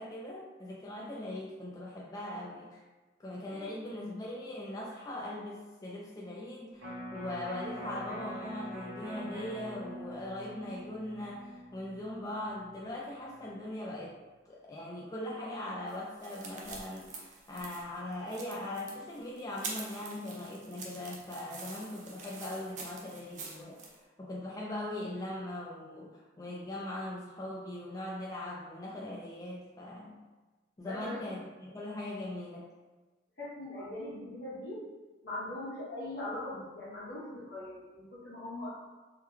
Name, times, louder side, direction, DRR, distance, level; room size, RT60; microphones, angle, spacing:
voice 1, 0.0-2.8 3.2-14.2 14.5-23.8 24.2-30.2 30.8-32.7, left 1 dB, 20° left, -5 dB, 0.3 m, -40 dB
Electric guitar, 6.8-13.0 13.4-13.5, equal, 90° right, 0.9 m, -44 dB
sound 1, 15.9-23.9, right 3 dB, 40° right, 0.5 m, -46 dB
voice 2, 30.8-31.2 33.4-34.8 35.2-38.7, left 1 dB, 55° left, -8 dB, 1.2 m, -41 dB
3.5 x 2.1 x 3.1 m, 1.2 s
head